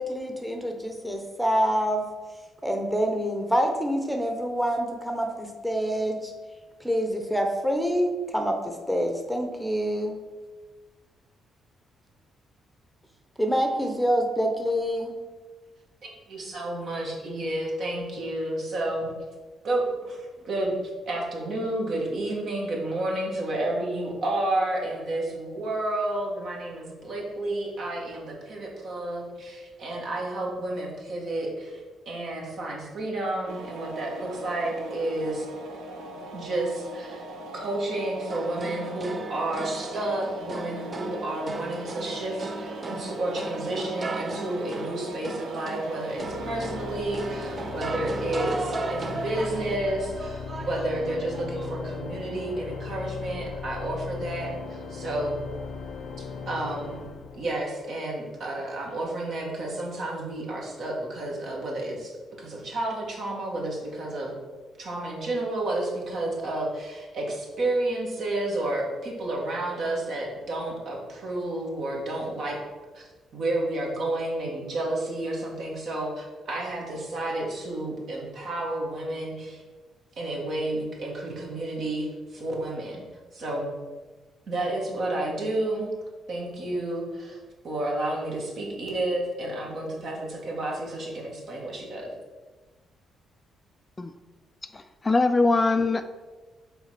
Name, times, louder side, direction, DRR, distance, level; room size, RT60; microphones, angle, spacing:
voice 1, 0.0-2.1 2.6-6.3 6.8-10.2 13.4-15.1, equal, ahead, 3 dB, 0.9 m, -26 dB
voice 2, 16.0-19.1 19.6-20.8 21.1-35.5 36.3-37.3 37.5-55.4 56.2-57.0 57.4-62.1 62.4-64.3 64.8-72.6 72.9-73.1 73.3-79.6 80.2-83.0 83.3-83.7 84.5-85.9 86.3-87.4 87.6-92.1, right 1 dB, 60° right, -2 dB, 1.9 m, -31 dB
sound 1, 33.5-49.8, right 1 dB, 80° right, 0.9 m, -40 dB
sound 2, 38.3-51.9, right 3 dB, 35° right, 0.5 m, -37 dB
Organ, 46.0-57.9, left 5 dB, 70° left, 0.6 m, -37 dB
voice 3, 94.7-96.0, left 3 dB, 25° left, 9 dB, 0.4 m, -22 dB
5.6 x 3.9 x 5.9 m, 1.3 s
cardioid pair, 90°, 0 cm